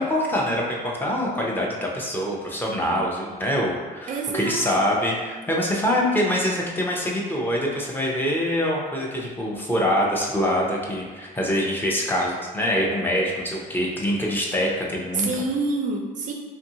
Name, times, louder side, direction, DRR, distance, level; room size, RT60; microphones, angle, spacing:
voice 1, 0.0-15.3, equal, 10° left, -3 dB, 0.5 m, -24 dB
voice 2, 4.1-4.8 15.1-16.3, right 3 dB, 50° right, 2 dB, 0.4 m, -27 dB
2.6 x 2.6 x 2.7 m, 1.4 s
cardioid pair, 110°, 17 cm